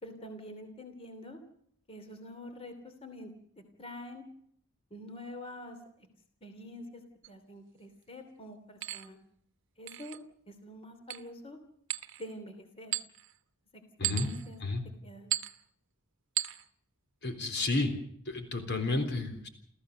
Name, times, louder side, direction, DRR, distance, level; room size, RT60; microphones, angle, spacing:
voice 1, 0.0-1.4 1.9-3.3 3.8-4.2 4.9-6.1 6.4-6.9 7.3-9.2 9.8-10.2 10.5-11.6 12.2-12.9 13.7-14.6 15.0-15.3, left 1 dB, 25° left, 7 dB, 2.9 m, -46 dB
sound 1, 7.2-7.3 8.8-9.1 9.9-10.2 11.1-11.3 11.9-12.3 12.9-13.3 14.0-14.5 15.3-15.6 16.4-16.6, right 14 dB, 60° right, 1.0 m, -35 dB
voice 2, 17.2-17.9 18.3-19.5, left 2 dB, 50° left, 7 dB, 3.7 m, -31 dB
29.5 x 15.0 x 6.8 m, 0.69 s
head